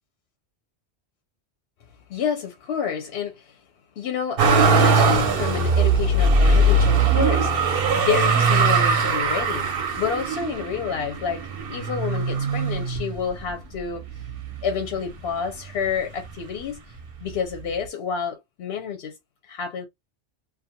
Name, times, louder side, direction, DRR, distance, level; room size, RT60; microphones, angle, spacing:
voice 1, 2.1-3.6 4.0-7.7 8.0-9.7 10.0-14.0 14.6-16.8 17.2-19.1 19.5-19.9, left 7 dB, 65° left, 0.7 m, -29 dB
Motor vehicle (road), 4.4-13.5 14.1-14.9 15.2-16.3 17.3-17.4, right 3 dB, 55° right, 0.8 m, -21 dB
2.6 x 2.2 x 2.7 m
omnidirectional pair, 1.2 m